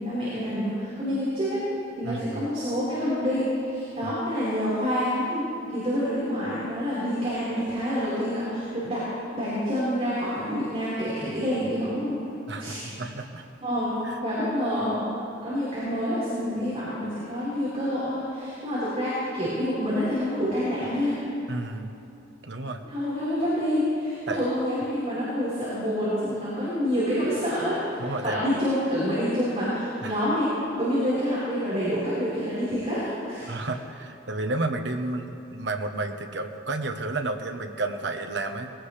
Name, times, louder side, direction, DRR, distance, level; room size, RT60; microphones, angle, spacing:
voice 1, 0.0-1.6 2.0-5.4 5.7-9.0 9.3-12.2 12.6-12.9 13.6-13.9 14.2-15.0 15.4-21.2 22.8-30.5 30.8-33.6, equal, 35° right, -11 dB, 4.4 m, -27 dB
voice 2, 2.0-2.5 4.0-4.1 12.5-13.5 14.0-14.2 21.5-22.0 22.4-22.8 24.3-24.4 28.0-28.6 30.0-30.2 33.5-38.7, right 2 dB, 65° right, 5 dB, 1.0 m, -31 dB
20.5 x 17.5 x 3.3 m, 2.8 s
head